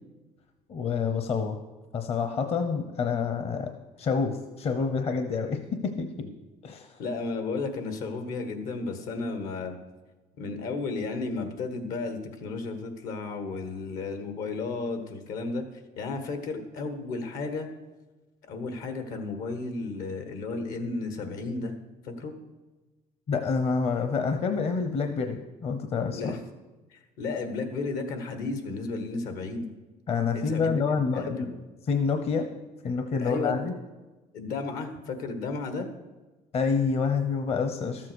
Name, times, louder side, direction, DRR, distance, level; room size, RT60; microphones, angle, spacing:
voice 1, 0.7-1.6 1.9-6.3 6.6-7.0 23.3-26.4 30.1-31.4 31.9-32.5 32.8-33.8 36.5-38.1, left 5 dB, 45° left, 7 dB, 0.9 m, -28 dB
voice 2, 7.0-9.7 10.4-15.6 16.0-17.7 18.5-21.7 22.0-22.4 26.1-26.4 26.9-29.7 30.3-30.8 31.1-31.6 33.2-33.6 34.3-35.9, left 3 dB, 80° left, 7 dB, 1.6 m, -33 dB
13.0 x 7.6 x 6.3 m, 1.2 s
cardioid pair, 115°, 14 cm